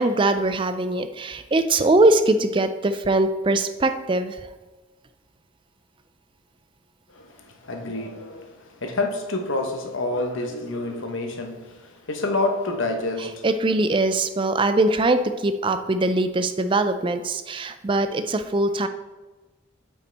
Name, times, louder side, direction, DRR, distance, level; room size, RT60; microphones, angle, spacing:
voice 1, 0.0-4.4 13.4-18.9, right 2 dB, 25° right, 10 dB, 0.3 m, -22 dB
voice 2, 7.1-13.5, left 2 dB, 70° left, 4 dB, 1.0 m, -28 dB
8.0 x 5.8 x 3.4 m, 1.2 s
head